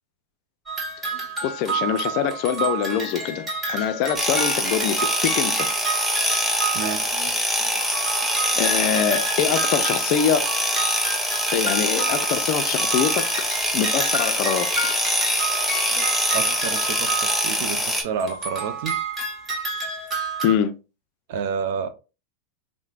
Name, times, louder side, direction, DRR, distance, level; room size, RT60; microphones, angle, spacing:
sound 1, 0.7-7.4 7.7-17.9 18.2-20.6, right 3 dB, 15° right, 1.3 m, -30 dB
voice 1, 1.4-5.7 6.3-6.5 7.2-7.3 7.6-7.7 8.6-10.4 11.5-13.2 13.7-14.9 15.9-16.1 20.4-20.7, left 8 dB, 50° left, 0.3 m, -24 dB
sound 2, 4.2-18.0, equal, ahead, 0.6 m, -24 dB
voice 2, 6.7-7.2 16.3-19.0 21.3-21.9, right 6 dB, 60° right, 0.4 m, -29 dB
3.1 x 2.0 x 2.3 m
hypercardioid pair, 90°, 0 cm